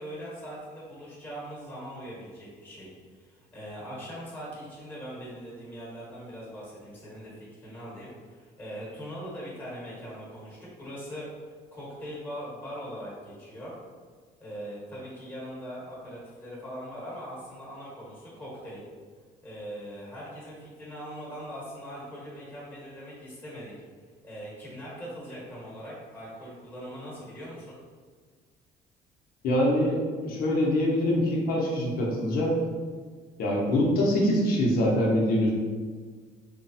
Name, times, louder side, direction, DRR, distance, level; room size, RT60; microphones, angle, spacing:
voice 1, 0.0-11.3 11.7-13.8 14.4-18.8 19.4-23.7 24.2-27.8, equal, 10° left, -6 dB, 1.2 m, -41 dB
voice 2, 29.4-32.6 33.4-35.5, left 1 dB, 60° left, -3 dB, 0.7 m, -24 dB
3.1 x 2.0 x 2.6 m, 1.5 s
cardioid pair, 110°, 17 cm